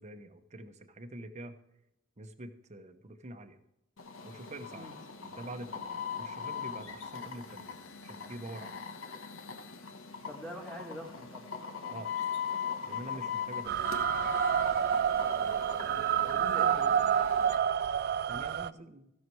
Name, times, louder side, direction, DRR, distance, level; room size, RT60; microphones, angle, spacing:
voice 1, 0.0-1.6 2.2-3.6 4.2-4.9 5.2-7.7 8.0-8.8 11.9-12.1 12.8-14.1 14.3-14.4 18.3-19.1, right 1 dB, 35° right, 8 dB, 0.9 m, -46 dB
sound 1, 4.0-17.6, left 7 dB, 65° left, 1.2 m, -40 dB
voice 2, 10.3-11.5 15.8-17.0, equal, 5° left, 0 dB, 2.2 m, -45 dB
sound 2, 13.7-18.7, right 8 dB, 50° right, 0.3 m, -28 dB
15.5 x 6.6 x 4.6 m, 0.88 s
head